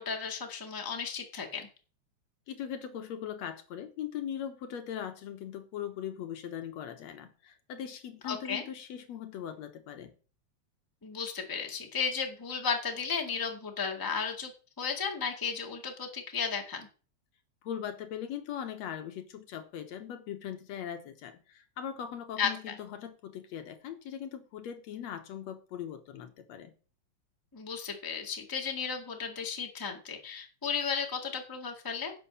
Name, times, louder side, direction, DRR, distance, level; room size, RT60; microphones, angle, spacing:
voice 1, 0.0-1.7 8.2-8.6 11.0-14.5 14.8-16.9 22.4-22.7 27.5-32.1, left 6 dB, 10° left, 1.4 m, -34 dB
voice 2, 2.5-10.1 17.6-26.7, left 9 dB, 70° left, 2.2 m, -40 dB
11.0 x 6.8 x 7.1 m
omnidirectional pair, 3.3 m